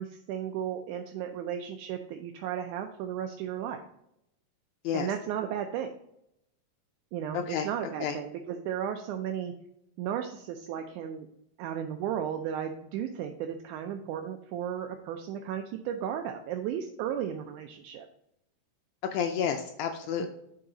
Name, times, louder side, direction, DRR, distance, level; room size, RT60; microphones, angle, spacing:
voice 1, 0.0-3.8 4.9-6.0 7.1-9.5 10.0-11.3 11.6-18.1 20.2-20.3, right 9 dB, 80° right, 5 dB, 1.9 m, -34 dB
voice 2, 7.3-7.7 8.0-8.2 19.1-20.3, left 8 dB, 85° left, 5 dB, 1.7 m, -30 dB
7.7 x 4.9 x 3.9 m, 0.78 s
omnidirectional pair, 3.9 m